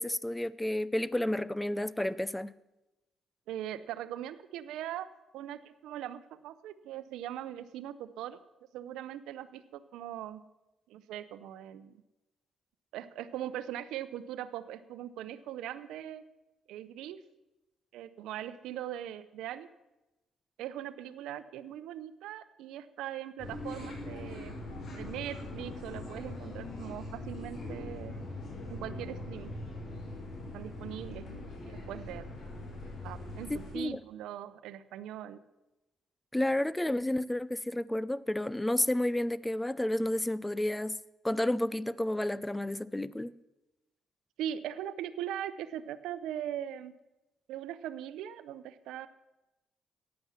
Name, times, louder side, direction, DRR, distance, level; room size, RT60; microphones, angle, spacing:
voice 1, 0.0-2.5 33.5-34.0 36.3-41.0 41.2-43.4, left 1 dB, 10° left, 0.5 m, -31 dB
voice 2, 3.5-5.1 5.3-8.4 8.7-10.4 10.9-12.0 12.9-16.2 16.7-17.2 17.9-19.7 20.6-24.5 24.9-28.1 28.7-29.5 29.8-30.1 30.5-32.3 33.0-35.4 44.4-46.9 47.5-49.1, right 11 dB, 90° right, 0.7 m, -40 dB
sound 1, 23.4-33.7, left 2 dB, 60° left, 4.6 m, -42 dB
14.0 x 9.7 x 7.3 m
cardioid pair, 90°, 0 cm